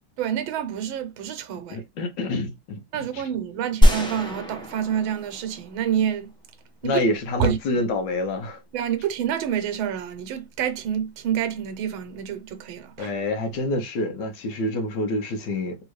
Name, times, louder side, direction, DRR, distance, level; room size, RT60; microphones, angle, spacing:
voice 1, 0.2-1.8 2.9-6.3 6.8-7.0 7.4-7.6 8.7-13.1, right 9 dB, 90° right, 1.5 m, -28 dB
voice 2, 1.7-3.2 6.8-8.6 13.0-15.8, left 2 dB, 70° left, 1.4 m, -27 dB
sound 1, 3.8-6.1, equal, 5° left, 0.4 m, -22 dB
3.5 x 3.1 x 3.1 m
omnidirectional pair, 2.1 m